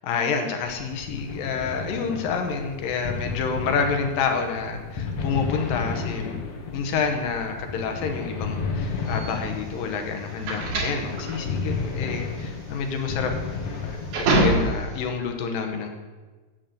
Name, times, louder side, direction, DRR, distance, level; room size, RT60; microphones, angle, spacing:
voice 1, 0.0-6.4 6.7-13.3 13.8-15.9, left 5 dB, 85° left, 4 dB, 2.7 m, -28 dB
sound 1, 0.7-14.5, left 4 dB, 55° left, 2.5 m, -32 dB
Security door opening, 9.1-15.0, right 2 dB, 65° right, 3.2 m, -26 dB
9.4 x 6.6 x 7.7 m, 1.3 s
omnidirectional pair, 4.0 m